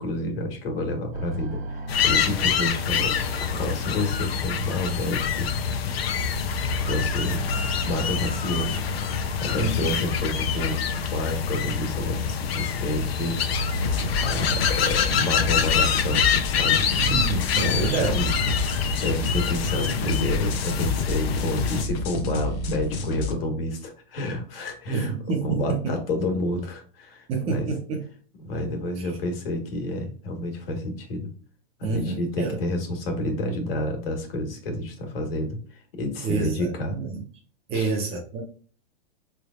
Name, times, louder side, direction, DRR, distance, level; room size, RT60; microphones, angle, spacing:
voice 1, 0.0-5.5 6.8-7.4 7.8-8.8 9.4-10.8 11.0-13.4 14.1-16.9 17.6-18.3 18.6-25.1 25.4-27.7 28.4-31.3 31.8-35.6 35.9-37.0 37.7-37.9, left 1 dB, 70° left, 1.5 m, -29 dB
sound 1, 1.1-6.1 6.4-11.8 12.5-18.5, right 2 dB, 80° right, 0.8 m, -39 dB
sound 2, 1.9-21.8, left 7 dB, 85° left, 0.7 m, -26 dB
voice 2, 9.6-9.9 17.0-18.2 24.9-26.0 27.3-28.0 29.0-29.1 31.8-32.6 36.2-37.2 37.7-38.4, right 4 dB, 20° right, 0.5 m, -28 dB
sound 3, 13.7-23.3, left 3 dB, 40° left, 0.9 m, -29 dB
4.0 x 3.4 x 2.4 m
supercardioid pair, 160°, 30 cm